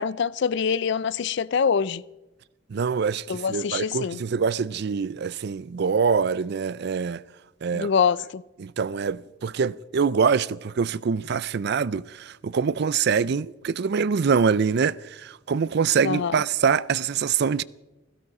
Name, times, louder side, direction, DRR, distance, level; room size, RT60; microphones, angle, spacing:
voice 1, 0.0-2.0 3.3-4.2 7.7-8.4 16.0-16.4, left 6 dB, 65° left, 0.4 m, -25 dB
voice 2, 2.7-7.2 7.6-7.9 8.6-17.6, right 6 dB, 55° right, 0.4 m, -24 dB
17.0 x 15.5 x 4.9 m
head